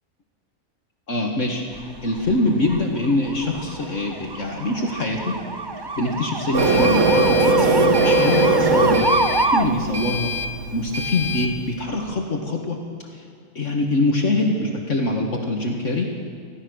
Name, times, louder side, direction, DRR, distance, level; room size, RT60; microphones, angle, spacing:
voice 1, 1.1-5.4 6.0-9.1 9.5-10.3 10.7-12.8 13.1-13.2 13.6-16.1, left 2 dB, 60° left, 1 dB, 2.1 m, -24 dB
sound 1, 1.7-9.6, right 3 dB, 25° right, 0.7 m, -27 dB
Printer, 6.5-11.5, right 2 dB, 60° right, 1.8 m, -20 dB
26.0 x 16.0 x 6.4 m, 2.4 s
omnidirectional pair, 1.5 m